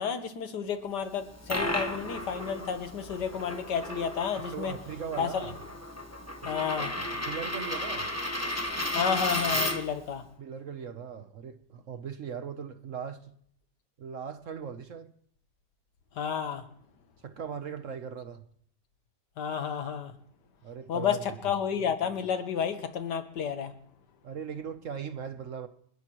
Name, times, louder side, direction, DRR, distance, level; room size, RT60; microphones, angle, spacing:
voice 1, 0.0-4.7 5.2-5.5 6.5-6.9 8.9-10.2 16.2-16.6 19.4-20.1 20.9-23.8, left 7 dB, 75° left, 1.8 m, -31 dB
Coin (dropping), 1.1-10.0, left 1 dB, 10° left, 0.9 m, -34 dB
voice 2, 4.5-5.6 6.4-6.8 7.1-8.1 10.4-13.2 14.0-15.1 17.2-18.4 20.6-21.4 24.2-25.7, right 7 dB, 55° right, 1.1 m, -39 dB
29.0 x 11.0 x 3.0 m
omnidirectional pair, 1.8 m